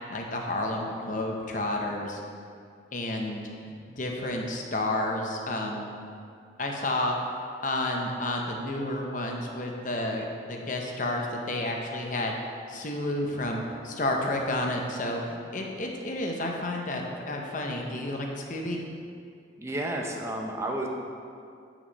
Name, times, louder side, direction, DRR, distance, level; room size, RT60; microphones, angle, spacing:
voice 1, 0.1-2.2 2.9-5.9 6.6-7.2 7.6-12.4 12.7-18.8, left 1 dB, 45° left, 1 dB, 0.9 m, -31 dB
voice 2, 19.6-20.9, right 1 dB, 15° right, 0 dB, 0.7 m, -31 dB
8.6 x 6.1 x 4.1 m, 2.3 s
head